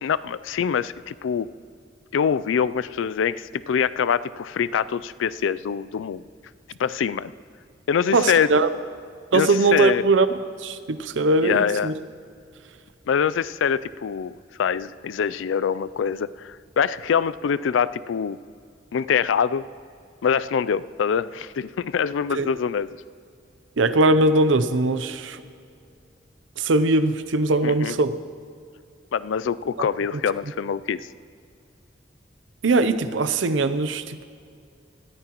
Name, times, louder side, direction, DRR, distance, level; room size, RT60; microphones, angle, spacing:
voice 1, 0.0-1.5 2.1-6.2 6.8-7.3 7.9-8.5 9.3-10.0 11.4-11.9 13.1-18.4 18.9-19.7 20.2-22.9 27.6-27.9 29.1-31.0, left 7 dB, 90° left, 17 dB, 0.4 m, -24 dB
voice 2, 8.1-8.7 9.3-11.9 22.3-22.5 23.8-25.4 26.6-28.2 29.8-29.9 30.1-30.2 32.6-34.2, right 2 dB, 85° right, 13 dB, 0.6 m, -21 dB
20.5 x 14.0 x 3.0 m, 2.4 s
head